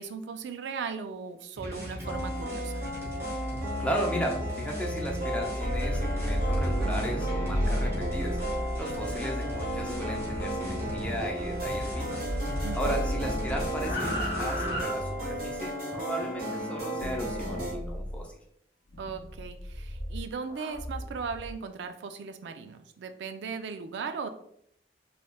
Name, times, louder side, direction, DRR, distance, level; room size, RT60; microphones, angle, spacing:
voice 1, 0.0-2.8 12.6-13.0 19.0-24.3, right 5 dB, 85° right, 8 dB, 0.3 m, -37 dB
sound 1, 1.6-14.8, equal, 15° right, 1.0 m, -36 dB
sound 2, 2.0-17.7, right 1 dB, 55° right, 1.4 m, -35 dB
voice 2, 3.8-18.3, equal, 5° left, 0 dB, 0.5 m, -36 dB
sound 3, 5.5-11.9 12.2-15.6 17.0-18.2 18.9-21.5, equal, 70° left, 0.7 m, -34 dB
3.2 x 3.0 x 2.2 m, 0.70 s
head